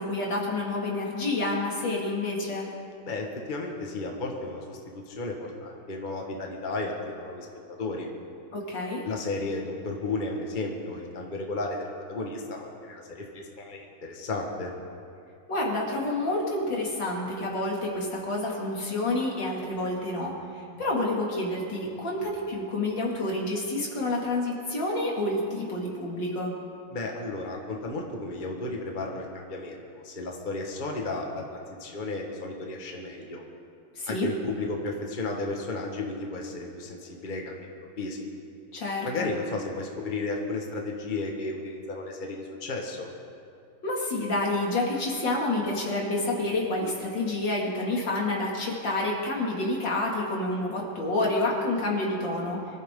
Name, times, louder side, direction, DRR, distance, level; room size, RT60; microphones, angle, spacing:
voice 1, 0.0-2.7 8.5-9.0 15.5-26.5 33.9-34.3 38.7-39.3 43.8-52.6, left 2 dB, 75° left, -3 dB, 3.2 m, -29 dB
voice 2, 3.1-7.5 7.8-8.1 9.0-14.7 26.9-31.4 31.8-33.4 34.1-37.7 38.0-38.3 39.0-43.1, left 2 dB, 25° left, 0 dB, 1.6 m, -33 dB
24.5 x 14.0 x 3.8 m, 2.6 s
omnidirectional pair, 2.0 m